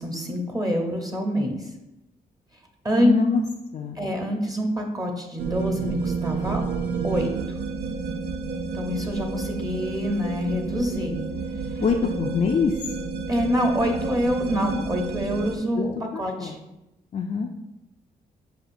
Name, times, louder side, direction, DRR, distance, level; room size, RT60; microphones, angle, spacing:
voice 1, 0.0-1.7 2.8-3.1 4.0-6.6 7.0-7.3 8.7-11.2 11.8-11.9 13.3-16.6, equal, 20° right, 2 dB, 0.7 m, -26 dB
voice 2, 3.0-3.4 3.7-4.0 11.8-12.7 15.8-15.9 16.1-16.5 17.1-17.5, left 5 dB, 45° left, 1 dB, 0.4 m, -24 dB
sound 1, 5.4-15.6, right 5 dB, 80° right, 0.5 m, -30 dB
6.3 x 2.4 x 2.6 m, 0.94 s
supercardioid pair, 60°, 17 cm